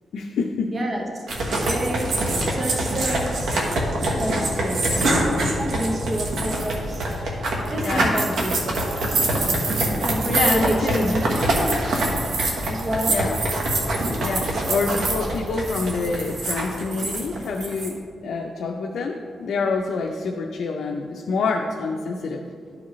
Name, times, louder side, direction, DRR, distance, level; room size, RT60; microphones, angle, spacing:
voice 1, 0.1-0.8 4.9-5.4 7.8-8.1 10.3-11.1 13.1-13.4 14.2-22.4, left 4 dB, 75° left, 1 dB, 0.5 m, -27 dB
voice 2, 0.7-3.6 4.2-5.1 5.5-7.3 7.7-9.1 10.0-11.3 12.7-13.2, right 1 dB, 35° right, 0 dB, 0.8 m, -29 dB
sound 1, 1.3-17.9, right 1 dB, 75° right, 1.2 m, -24 dB
12.0 x 4.8 x 3.1 m, 2.3 s
cardioid pair, 120°, 0 cm